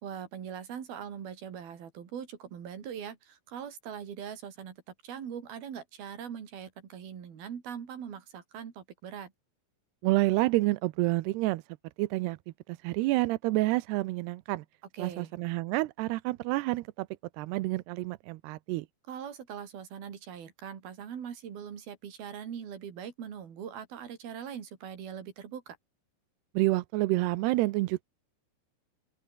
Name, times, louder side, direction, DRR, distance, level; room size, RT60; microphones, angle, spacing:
voice 1, 0.0-9.3 14.9-15.3 19.1-25.8, right 8 dB, 60° right, 4.9 m, -41 dB
voice 2, 10.0-11.6 12.0-12.4 12.7-14.6 15.0-17.1 17.4-18.9 26.5-28.0, right 19 dB, 85° right, 2.7 m, -28 dB
open air
omnidirectional pair, 4.9 m